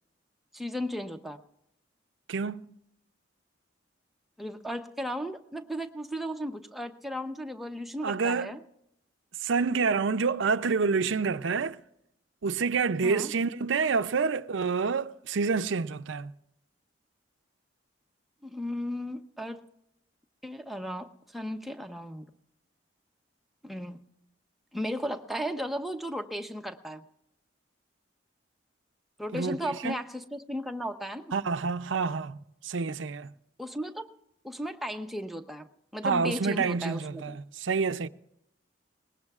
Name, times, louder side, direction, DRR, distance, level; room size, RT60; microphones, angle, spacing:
voice 1, 0.5-1.4 4.4-8.6 13.0-13.3 18.4-19.6 20.4-22.3 23.6-24.0 24.7-27.0 29.2-31.3 33.6-34.1 34.4-37.4, equal, ahead, 0.8 m, -35 dB
voice 2, 2.3-2.7 8.0-8.5 9.4-11.8 12.4-16.3 29.3-30.0 31.3-32.4 32.6-33.3 36.0-38.1, right 5 dB, 85° right, 0.5 m, -28 dB
22.0 x 20.0 x 2.4 m
head